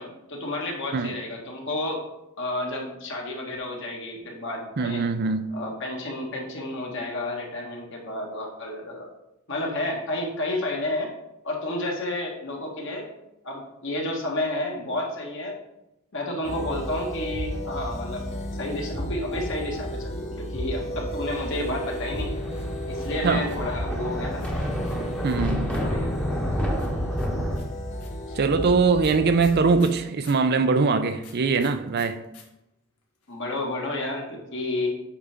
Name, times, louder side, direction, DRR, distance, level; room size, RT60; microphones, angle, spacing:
voice 1, 0.0-2.0 2.4-5.0 5.5-9.1 9.5-11.1 11.4-13.1 13.4-15.6 16.1-18.3 18.6-22.3 22.9-24.5 25.8-26.1 28.3-28.4 33.3-34.9, left 1 dB, 55° left, 1.7 m, -31 dB
voice 2, 4.8-5.5 23.2-23.4 25.2-25.7 28.3-32.2, right 4 dB, 45° right, 0.4 m, -22 dB
sound 1, 16.4-29.8, equal, 30° left, 0.9 m, -33 dB
sound 2, 22.1-23.8 24.4-26.0 26.8-30.5 31.2-32.4 32.7-32.8 33.0-33.5, left 7 dB, 85° left, 1.6 m, -51 dB
Thunder, 22.1-27.6, equal, 5° left, 1.0 m, -30 dB
8.6 x 5.6 x 3.5 m
head